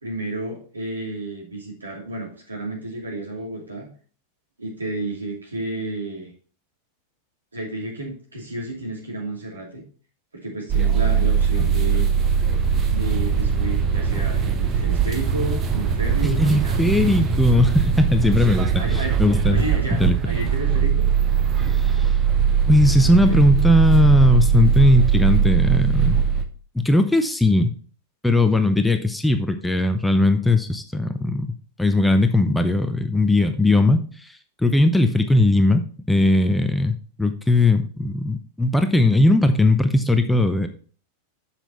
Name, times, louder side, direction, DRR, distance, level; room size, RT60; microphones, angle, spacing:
voice 1, 0.0-3.9 4.6-6.3 7.5-9.8 10.3-12.1 12.9-16.9 18.8-19.1 19.5-21.1 23.0-23.4, right 2 dB, 75° right, -1 dB, 2.8 m, -31 dB
sound 1, 10.7-26.4, right 7 dB, 30° right, 1.0 m, -20 dB
voice 2, 16.2-19.6 20.0-20.2 21.7-22.1 22.7-26.2 26.7-27.7 28.2-31.5 31.8-35.8 36.1-40.7, left 2 dB, 5° left, 8 dB, 0.7 m, -18 dB
7.0 x 5.8 x 4.4 m, 0.41 s
figure-of-eight pair, 90°, 0 cm